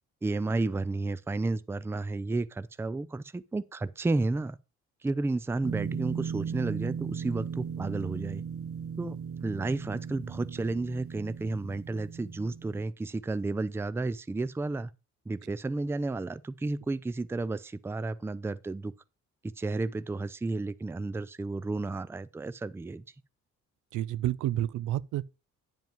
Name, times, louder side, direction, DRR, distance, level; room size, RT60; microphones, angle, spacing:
voice 1, 0.2-4.6 5.0-8.4 9.0-9.2 9.4-14.9 15.3-18.9 19.6-23.0, right 3 dB, 10° right, 0.4 m, -32 dB
sound 1, 5.6-12.8, right 7 dB, 50° right, 1.1 m, -37 dB
voice 2, 23.9-25.2, right 13 dB, 80° right, 0.5 m, -30 dB
9.3 x 5.2 x 5.2 m
cardioid pair, 90°, 30 cm